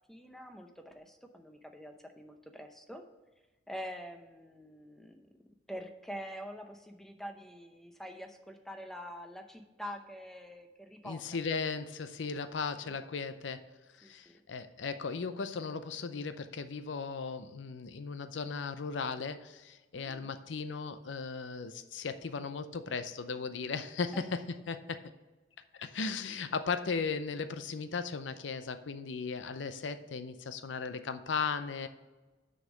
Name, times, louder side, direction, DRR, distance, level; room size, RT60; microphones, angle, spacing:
voice 1, 0.1-3.0 3.7-5.3 5.7-11.2 14.0-14.4 19.9-20.4 24.1-24.2, equal, ahead, 5 dB, 0.7 m, -45 dB
voice 2, 11.0-13.7 14.0-25.0 25.8-31.9, left 5 dB, 90° left, 11 dB, 0.6 m, -37 dB
6.5 x 5.4 x 6.2 m, 1.2 s
head